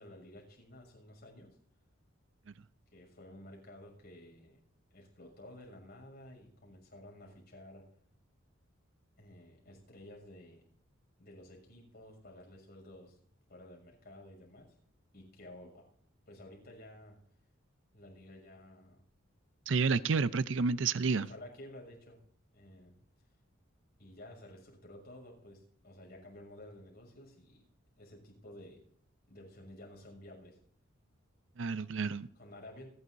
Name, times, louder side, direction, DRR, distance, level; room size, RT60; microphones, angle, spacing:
voice 1, 0.0-1.5 2.9-4.6 4.9-7.8 9.2-10.6 11.2-13.2 13.5-14.7 15.1-15.8 16.3-17.2 17.9-19.0 21.2-22.2 22.5-23.0 24.0-27.6 28.0-28.8 29.3-30.6 31.9-32.9, left 1 dB, 50° left, 0 dB, 6.5 m, -53 dB
voice 2, 19.7-21.3 31.6-32.3, right 4 dB, 65° right, 15 dB, 0.5 m, -30 dB
29.0 x 11.0 x 2.6 m, 0.62 s
head